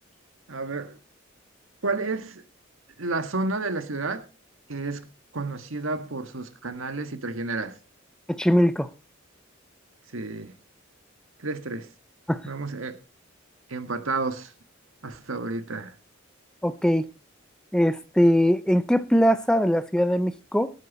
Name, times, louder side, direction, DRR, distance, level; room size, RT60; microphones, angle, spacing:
voice 1, 0.5-1.0 1.8-2.4 3.0-4.3 4.7-5.1 5.3-7.8 10.1-10.6 11.4-11.9 12.5-13.0 13.7-14.5 15.0-15.9, right 3 dB, 80° right, 1.7 m, -31 dB
voice 2, 8.4-8.9 12.3-12.4 16.6-17.1 17.7-20.7, equal, 5° left, 0.7 m, -21 dB
19.0 x 9.0 x 4.1 m
head